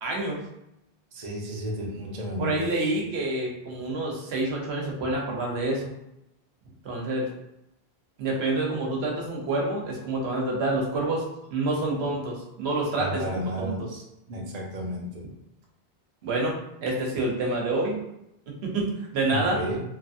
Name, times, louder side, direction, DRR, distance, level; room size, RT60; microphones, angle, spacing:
voice 1, 0.0-0.4 2.4-5.9 6.8-7.3 8.2-11.2 11.5-13.2 13.6-13.9 16.2-18.0 18.5-19.6, right 2 dB, 85° right, -1 dB, 1.0 m, -27 dB
voice 2, 1.1-2.7 11.9-12.1 12.9-13.8 14.3-15.3 19.3-19.8, equal, 45° right, -2 dB, 0.7 m, -32 dB
2.9 x 2.4 x 2.6 m, 0.85 s
omnidirectional pair, 1.1 m